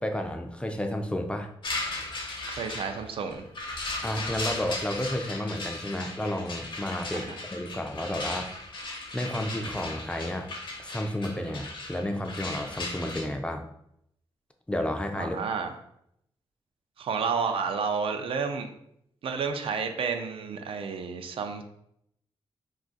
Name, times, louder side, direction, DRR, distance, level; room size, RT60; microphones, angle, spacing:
voice 1, 0.0-1.5 4.0-8.5 9.1-10.5 10.8-13.6 14.7-15.4, left 1 dB, 10° left, 4 dB, 0.3 m, -31 dB
sound 1, 1.6-13.2, left 2 dB, 55° left, 0.7 m, -37 dB
voice 2, 2.5-3.5 7.1-7.3 15.2-15.7 17.0-18.7 19.2-21.6, right 5 dB, 70° right, 6 dB, 0.4 m, -31 dB
2.4 x 2.4 x 3.8 m, 0.74 s
cardioid pair, 95°, 10 cm